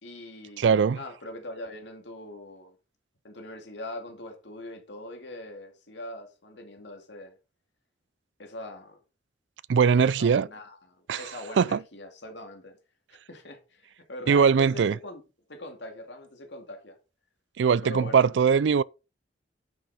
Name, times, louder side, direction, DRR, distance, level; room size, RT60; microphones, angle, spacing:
voice 1, 0.0-2.8 3.2-7.4 8.4-9.0 10.2-12.8 13.3-15.2 15.5-17.0 17.8-18.3, left 1 dB, 75° left, 2.3 m, -42 dB
voice 2, 0.6-1.0 9.7-10.5 11.1-11.2 11.6-11.8 14.3-15.0 17.6-18.8, right 6 dB, 80° right, 0.4 m, -21 dB
9.5 x 6.3 x 4.2 m
head